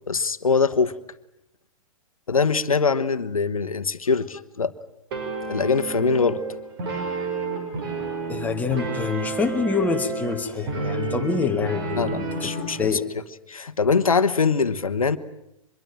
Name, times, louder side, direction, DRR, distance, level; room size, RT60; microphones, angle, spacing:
voice 1, 0.1-0.9 2.3-4.7 5.5-6.4 12.0-13.0 13.5-15.2, left 5 dB, 75° left, 12 dB, 1.3 m, -22 dB
sound 1, 5.1-12.8, right 3 dB, 40° right, 5.8 m, -31 dB
voice 2, 8.3-12.5 12.8-13.1, left 5 dB, 10° left, 5 dB, 1.8 m, -26 dB
24.0 x 22.5 x 9.0 m, 0.82 s
figure-of-eight pair, 115°, 18 cm